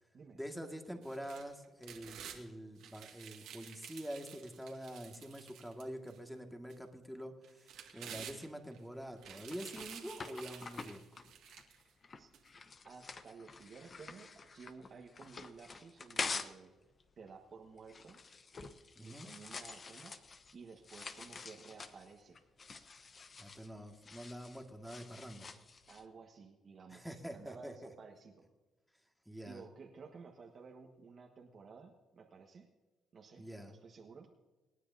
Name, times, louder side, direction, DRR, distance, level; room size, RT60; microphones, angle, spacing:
voice 1, 0.3-11.0 19.0-19.3 23.4-25.5 26.9-27.7 29.3-29.6 33.4-33.8, equal, ahead, 3 dB, 1.9 m, -46 dB
sound 1, 1.0-2.4 2.8-6.2 6.7-6.8 7.4-8.8 9.2-11.8 12.3-12.4, right 9 dB, 85° right, 1.9 m, -51 dB
sound 2, 8.9-16.7 17.0-26.0, left 4 dB, 40° left, 0.9 m, -47 dB
voice 2, 12.8-16.7 17.2-18.2 19.0-20.2 20.5-22.4 25.9-28.5 29.4-32.7 33.1-34.3, right 5 dB, 50° right, 1 dB, 1.5 m, -54 dB
26.5 x 9.9 x 2.8 m, 1.2 s
cardioid pair, 90°, 0 cm